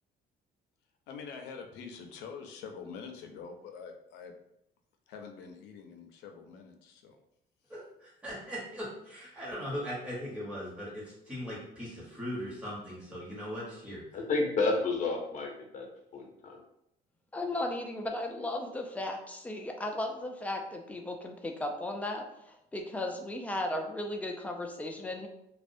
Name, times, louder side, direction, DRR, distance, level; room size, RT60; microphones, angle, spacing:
voice 1, 1.1-4.3 5.1-7.2, left 5 dB, 85° left, 5 dB, 0.4 m, -45 dB
voice 2, 7.7-14.1, equal, 5° right, -7 dB, 0.9 m, -39 dB
voice 3, 14.1-15.9 16.1-16.6, left 3 dB, 45° left, 1 dB, 0.6 m, -30 dB
voice 4, 17.3-25.3, left 1 dB, 10° left, 3 dB, 0.3 m, -36 dB
2.4 x 2.1 x 2.5 m, 0.79 s
cardioid pair, 110°, 17 cm